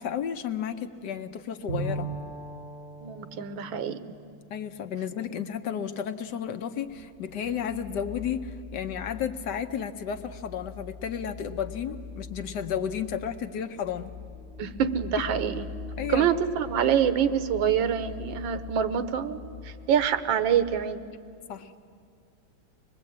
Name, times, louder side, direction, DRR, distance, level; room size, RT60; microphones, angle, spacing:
voice 1, 0.0-2.1 4.5-14.1 16.0-16.3 21.5-21.8, left 8 dB, 70° left, 8 dB, 1.4 m, -32 dB
Bowed string instrument, 1.7-5.4, right 3 dB, 55° right, 8.0 m, -38 dB
voice 2, 3.0-4.1 14.6-15.7 16.1-21.0, right 8 dB, 90° right, 12 dB, 1.6 m, -26 dB
sound 1, 6.9-20.8, left 4 dB, ahead, 2.0 m, -43 dB
24.5 x 20.5 x 8.7 m, 2.2 s
omnidirectional pair, 2.0 m